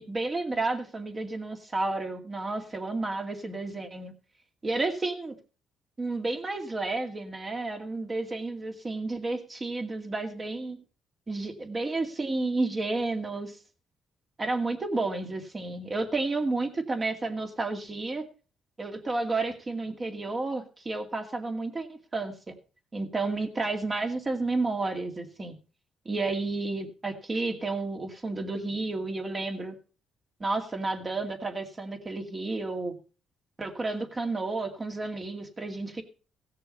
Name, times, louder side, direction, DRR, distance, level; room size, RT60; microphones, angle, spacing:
voice 1, 0.0-4.1 4.6-5.4 6.0-10.8 11.3-13.6 14.4-18.3 18.8-22.6 22.9-25.6 26.1-29.7 30.4-33.0 33.6-36.0, right 3 dB, 30° right, 4 dB, 2.3 m, -31 dB
16.5 x 6.7 x 5.4 m, 0.37 s
cardioid pair, 90°, 0 cm